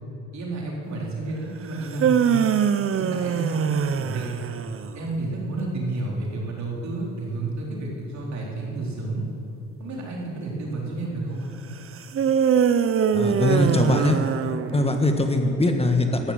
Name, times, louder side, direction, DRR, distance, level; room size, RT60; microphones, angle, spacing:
voice 1, 0.3-2.4 3.0-4.3 4.9-9.2 9.8-11.5, right 2 dB, 65° right, -3 dB, 4.1 m, -31 dB
sound 1, 1.7-5.0 12.1-15.1, right 8 dB, 45° right, 0.8 m, -23 dB
voice 2, 13.1-14.2 14.7-16.3, left 1 dB, 20° left, 4 dB, 1.5 m, -21 dB
14.0 x 11.5 x 7.8 m, 2.8 s
cardioid pair, 90°, 30 cm